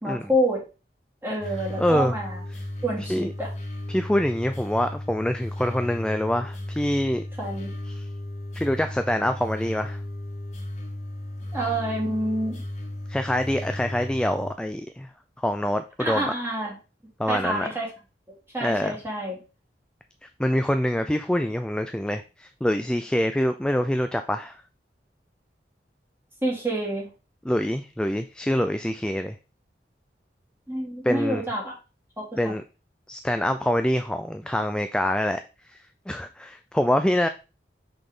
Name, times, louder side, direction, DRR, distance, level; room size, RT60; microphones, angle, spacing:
voice 1, 0.0-0.6 1.2-2.4 2.8-3.5 7.4-7.7 11.5-12.6 16.0-16.7 17.3-17.9 18.5-19.4 26.4-27.1 30.7-31.7 32.2-32.6, right 1 dB, 15° right, -4 dB, 2.7 m, -27 dB
sound 1, 1.4-14.5, left 1 dB, 40° left, 1.6 m, -35 dB
voice 2, 1.8-2.2 3.1-3.3 3.9-7.2 7.9-8.1 8.5-10.0 13.1-15.1 15.4-16.3 17.2-17.7 18.6-19.0 20.4-24.6 27.4-29.4 31.0-31.4 32.4-32.6 33.1-35.4 35.7-35.8 36.1-37.3, left 1 dB, 5° left, 8 dB, 0.3 m, -25 dB
6.0 x 5.2 x 3.7 m, 0.31 s
head